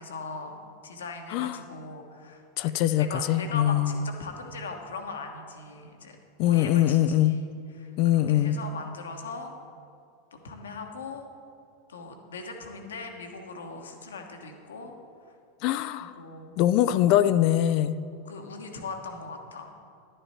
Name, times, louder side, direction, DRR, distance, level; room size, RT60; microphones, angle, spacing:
voice 1, 0.0-2.7 3.0-6.2 6.4-7.4 7.8-7.9 8.3-9.5 10.3-11.3 11.9-14.9 16.0-16.5 18.2-19.7, left 4 dB, 80° left, 4 dB, 1.2 m, -39 dB
voice 2, 2.6-4.0 6.4-7.4 8.0-8.6 15.6-16.1 16.6-18.0, left 12 dB, 55° left, 14 dB, 0.4 m, -23 dB
11.0 x 10.0 x 4.4 m, 2.5 s
hypercardioid pair, 90°, 0 cm